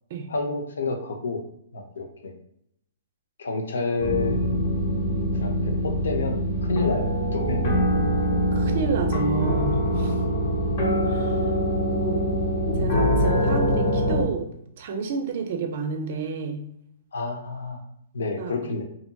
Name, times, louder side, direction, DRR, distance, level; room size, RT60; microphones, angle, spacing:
voice 1, 0.3-1.4 1.7-2.3 3.4-4.5 5.3-7.8 10.1-10.2 17.1-17.8 18.1-18.8, left 3 dB, 85° left, 4 dB, 0.5 m, -29 dB
sound 1, 4.0-14.2, equal, 55° left, 0.9 m, -24 dB
voice 2, 8.5-10.2 11.0-11.5 11.9-12.3 12.7-14.5 14.8-16.6 18.4-18.7, right 5 dB, 50° right, 5 dB, 0.4 m, -30 dB
2.7 x 2.6 x 2.2 m, 0.74 s
hypercardioid pair, 150°, 0 cm